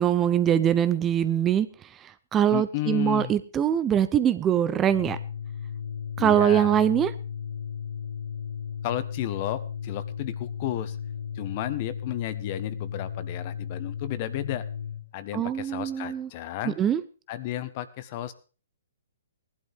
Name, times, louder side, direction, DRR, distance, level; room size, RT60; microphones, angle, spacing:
voice 1, 0.0-1.7 2.3-5.2 6.2-7.1 15.3-16.3 16.6-17.0, right 10 dB, 20° right, 14 dB, 0.7 m, -23 dB
voice 2, 2.5-3.3 6.2-6.8 8.8-11.0 11.3-14.6 15.1-16.8 17.3-18.3, left 13 dB, 40° left, 14 dB, 1.3 m, -33 dB
Organ, 4.8-15.1, left 8 dB, 80° left, 1.2 m, -35 dB
18.5 x 11.5 x 3.6 m, 0.36 s
hypercardioid pair, 130°, 0 cm